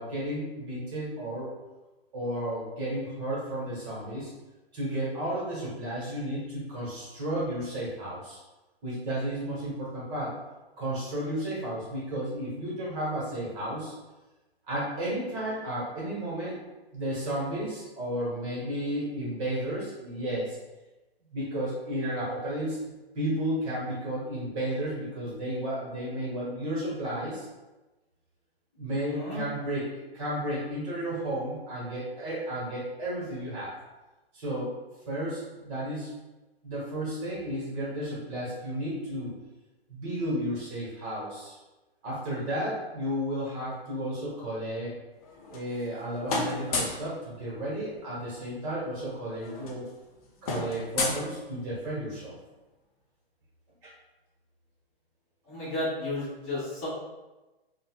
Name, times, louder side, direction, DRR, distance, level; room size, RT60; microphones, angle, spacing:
voice 1, 0.0-1.5 2.1-4.3 4.7-8.4 8.8-10.4 10.8-13.9 14.7-16.6 16.9-20.6 21.3-27.5 28.8-33.7 34.3-34.7 35.1-36.1 36.6-39.3 39.9-41.6 42.0-44.9 45.5-49.8 50.4-52.3 53.8-53.9, right 1 dB, 30° right, -7 dB, 1.0 m, -33 dB
voice 2, 29.1-29.4 55.5-56.9, left 2 dB, 20° left, -9 dB, 1.0 m, -33 dB
sound 1, 45.2-46.0 46.3-47.1 48.5-48.6 48.8-49.0 49.3-51.9, left 3 dB, 35° left, 0.5 m, -33 dB
3.9 x 2.1 x 2.2 m, 1.1 s
hypercardioid pair, 130°, 31 cm